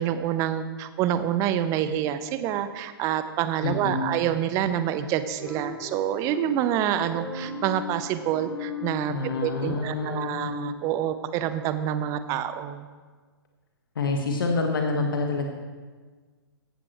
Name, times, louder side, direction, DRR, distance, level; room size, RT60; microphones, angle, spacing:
voice 1, 0.0-9.1 9.4-12.9, right 10 dB, 25° right, 12 dB, 0.7 m, -27 dB
voice 2, 3.6-4.1 9.1-10.5 13.9-15.5, left 3 dB, 60° left, 2 dB, 1.5 m, -27 dB
sound 1, 5.4-10.7, left 4 dB, 5° left, 2.0 m, -37 dB
16.0 x 14.0 x 3.1 m, 1.4 s
figure-of-eight pair, 115°, 13 cm